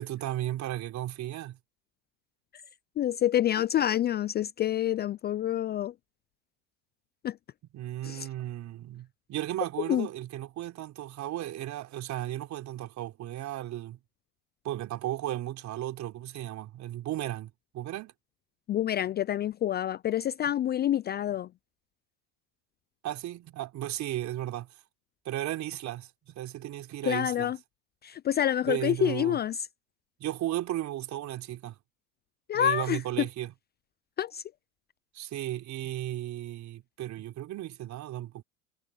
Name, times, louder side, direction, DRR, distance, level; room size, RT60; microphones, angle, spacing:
voice 1, 0.0-1.6 7.7-14.0 14.6-18.1 23.0-24.7 25.2-27.5 28.7-29.4 30.2-31.8 32.5-33.5 35.1-38.4, right 13 dB, 45° right, 4.2 m, -35 dB
voice 2, 3.0-5.9 7.2-7.4 8.0-8.3 9.9-10.1 18.7-21.5 27.0-27.6 28.0-29.6 32.5-33.3 34.2-34.4, left 11 dB, 25° left, 0.5 m, -27 dB
hypercardioid pair, 95°, 39 cm